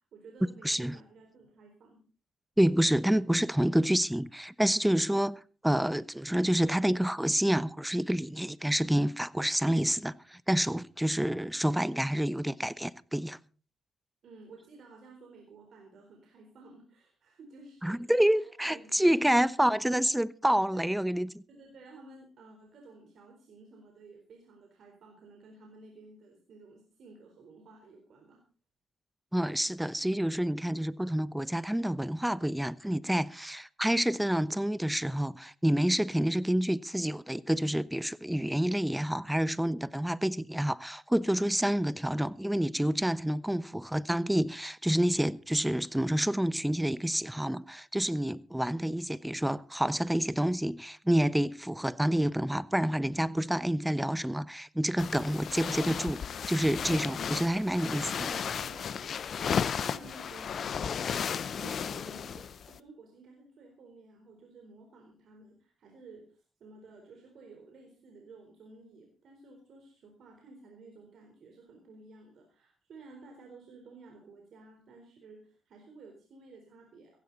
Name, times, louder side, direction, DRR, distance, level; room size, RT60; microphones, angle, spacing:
voice 1, 0.0-2.0 14.2-19.0 19.3-19.7 20.7-20.9 21.5-28.4 58.2-77.2, right 3 dB, 65° right, 4.1 m, -53 dB
voice 2, 0.6-1.0 2.6-13.4 17.8-21.4 29.3-58.3, right 1 dB, 5° right, 1.0 m, -28 dB
Moving in Bed, 55.0-62.8, left 7 dB, 60° left, 0.7 m, -34 dB
16.0 x 16.0 x 4.1 m
supercardioid pair, 55°, 0 cm